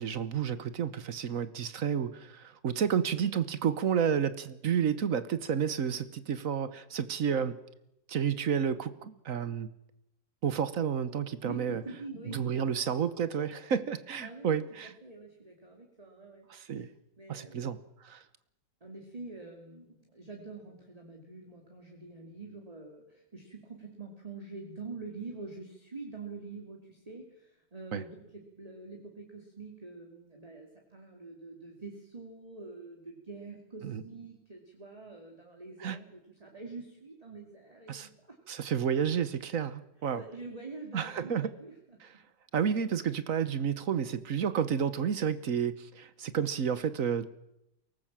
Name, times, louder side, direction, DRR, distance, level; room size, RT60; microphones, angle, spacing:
voice 1, 0.0-7.6 8.1-9.7 10.4-11.8 12.3-14.9 16.5-16.9 17.3-17.8 18.0-18.2 27.9-28.0 33.8-34.0 35.8-36.0 37.9-38.1 38.5-40.2 40.9-41.5 42.0-42.1 42.5-47.4, right 7 dB, 55° right, 14 dB, 1.3 m, -31 dB
voice 2, 11.4-12.9 14.2-16.9 17.2-17.8 18.8-38.4 40.1-42.0, right 3 dB, 20° right, 0 dB, 2.6 m, -46 dB
23.0 x 18.5 x 7.5 m, 0.83 s
omnidirectional pair, 2.0 m